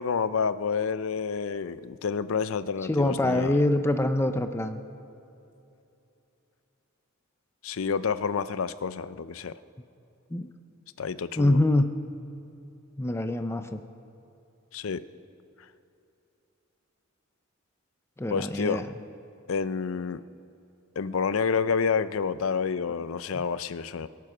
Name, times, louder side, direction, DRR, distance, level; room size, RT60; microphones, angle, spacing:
voice 1, 0.0-3.5 7.6-9.5 11.0-11.6 14.7-15.0 18.3-18.8 19.5-20.2 21.0-24.1, left 5 dB, 70° left, 15 dB, 0.5 m, -29 dB
voice 2, 2.9-4.8 10.3-10.5 11.4-11.9 13.0-13.8 18.2-18.9 23.3-23.4, left 1 dB, 10° left, 8 dB, 0.5 m, -25 dB
22.5 x 9.4 x 6.0 m, 2.8 s
head